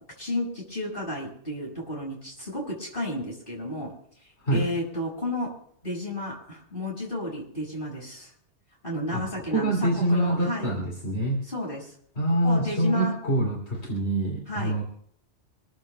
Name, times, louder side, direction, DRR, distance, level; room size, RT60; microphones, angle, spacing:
voice 1, 0.2-3.9 4.5-5.5 5.8-8.3 8.8-10.7 11.5-11.9 12.4-13.1 14.5-14.8, left 1 dB, 45° left, -1 dB, 6.3 m, -32 dB
voice 2, 4.4-4.7 9.1-11.4 12.2-14.8, right 1 dB, 65° left, -1 dB, 3.7 m, -26 dB
26.5 x 14.5 x 2.2 m, 0.63 s
omnidirectional pair, 1.2 m